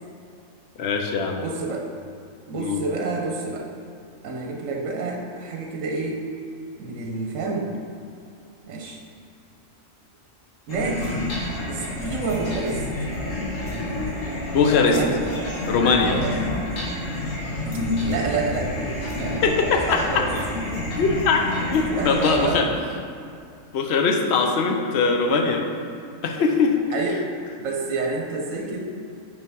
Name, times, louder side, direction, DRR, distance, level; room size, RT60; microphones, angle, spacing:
voice 1, 0.8-1.4 2.5-2.8 14.5-15.0 15.7-16.2 17.1-17.4 19.4-20.3 21.0-22.7 23.7-25.6 26.2-26.7, left 4 dB, 60° left, 3 dB, 0.9 m, -21 dB
voice 2, 1.4-1.9 2.5-3.7 4.2-6.2 6.8-7.7 8.7-9.0 10.7-11.3 11.7-12.8 14.9-15.2 16.0-16.3 18.0-19.4 19.9-20.3 21.9-22.8 26.9-27.2 27.6-28.8, right 3 dB, 75° right, 1 dB, 1.1 m, -28 dB
sound 1, 10.7-22.5, left 1 dB, 75° left, 1.7 m, -28 dB
5.6 x 5.4 x 4.7 m, 2.5 s
omnidirectional pair, 1.4 m